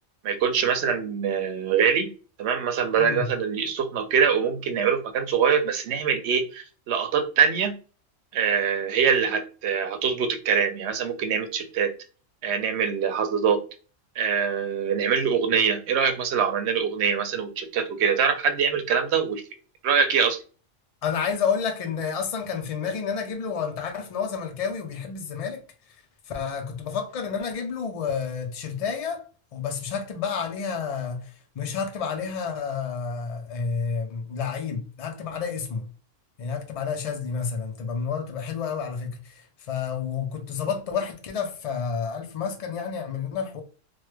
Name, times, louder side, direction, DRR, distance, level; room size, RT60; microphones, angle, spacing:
voice 1, 0.2-2.1 2.4-7.8 8.3-11.9 12.4-13.6 14.2-19.4 19.8-20.4, right 6 dB, 65° right, 0.8 m, -24 dB
voice 2, 3.0-3.3 21.0-25.6 26.3-29.2 29.5-35.9 36.4-43.6, left 6 dB, 55° left, 0.4 m, -30 dB
3.1 x 2.1 x 3.2 m
omnidirectional pair, 1.3 m